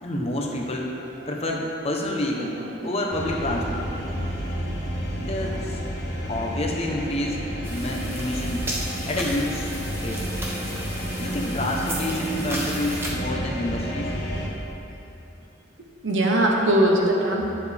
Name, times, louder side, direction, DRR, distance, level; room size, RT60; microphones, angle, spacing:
voice 1, 0.0-1.0 1.3-3.9 5.2-5.8 6.3-7.4 7.7-8.7 9.0-9.7 10.0-10.3 11.2-14.1, left 1 dB, 35° left, 0 dB, 0.9 m, -28 dB
voice 2, 2.6-2.9 5.4-5.6 16.0-17.5, right 1 dB, 80° right, 0 dB, 1.1 m, -21 dB
sound 1, 3.1-14.5, equal, 60° left, 1.3 m, -30 dB
sound 2, 7.6-13.1, right 1 dB, 15° right, 1.0 m, -35 dB
10.0 x 7.1 x 3.5 m, 2.8 s
head